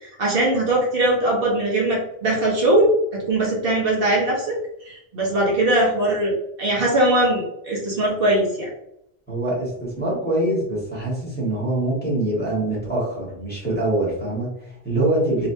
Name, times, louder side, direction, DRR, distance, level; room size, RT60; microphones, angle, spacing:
voice 1, 0.0-4.6 4.8-8.7, right 1 dB, 65° right, -3 dB, 1.0 m, -21 dB
voice 2, 9.3-15.5, right 1 dB, 10° left, -7 dB, 1.4 m, -24 dB
3.2 x 2.8 x 2.6 m, 0.77 s
omnidirectional pair, 1.1 m